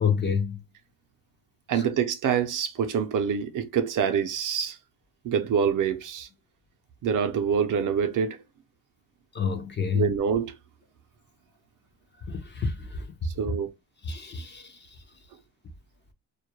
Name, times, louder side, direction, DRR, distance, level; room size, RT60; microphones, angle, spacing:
voice 1, 0.0-0.6 9.3-10.1 12.3-12.8 14.1-14.7, left 6 dB, 30° left, 0.5 m, -27 dB
voice 2, 1.7-4.8 5.2-6.3 7.0-8.4 9.9-10.6 13.2-13.7, right 7 dB, 60° right, 0.5 m, -26 dB
2.2 x 2.0 x 2.8 m
cardioid pair, 125°, 36 cm